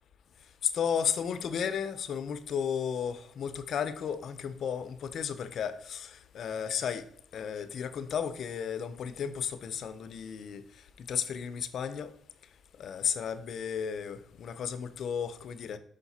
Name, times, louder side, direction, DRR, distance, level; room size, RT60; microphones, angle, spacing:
voice 1, 0.6-7.0 7.3-10.6 11.0-12.1 12.8-15.8, left 7 dB, 65° left, 0.7 m, -33 dB
5.8 x 5.2 x 4.1 m
cardioid pair, 90°, 0 cm